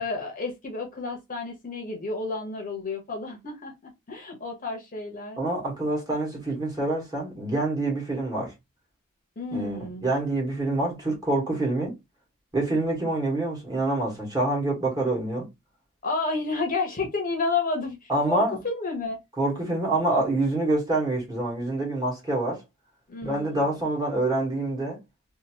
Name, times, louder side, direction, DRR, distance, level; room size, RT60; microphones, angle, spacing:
voice 1, 0.0-5.4 9.4-10.1 16.0-19.2 23.1-23.8, left 3 dB, 35° left, 0.8 m, -31 dB
voice 2, 5.4-8.5 9.5-11.9 12.5-15.5 18.1-18.6 19.4-22.6 23.2-25.0, right 2 dB, 15° right, 1.3 m, -26 dB
2.7 x 2.6 x 2.8 m
head